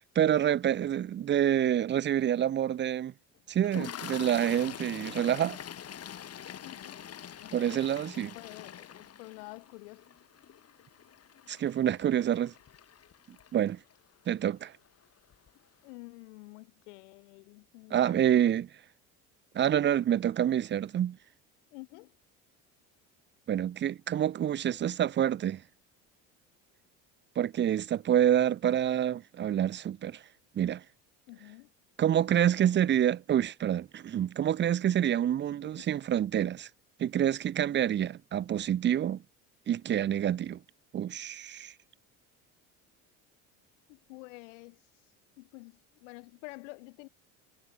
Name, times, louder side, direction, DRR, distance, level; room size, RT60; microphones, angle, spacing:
voice 1, 0.1-3.1 3.5-5.6 7.5-8.3 11.5-12.5 13.5-13.8 14.3-14.7 17.9-18.7 19.5-21.2 23.5-25.6 27.4-30.2 30.5-30.8 32.0-36.7 37.0-39.2 39.7-40.6 40.9-41.7, right 10 dB, 30° right, 0.6 m, -27 dB
Toilet flush, 3.6-13.9 14.9-15.0 15.3-15.5, left 9 dB, 45° left, 5.3 m, -45 dB
voice 2, 6.6-7.0 7.4-7.9 8.2-10.0 15.8-18.3 21.7-22.1 31.3-31.7 35.6-35.9 43.9-44.8 45.4-47.1, left 27 dB, 90° left, 6.3 m, -49 dB
supercardioid pair, 100°, 35 cm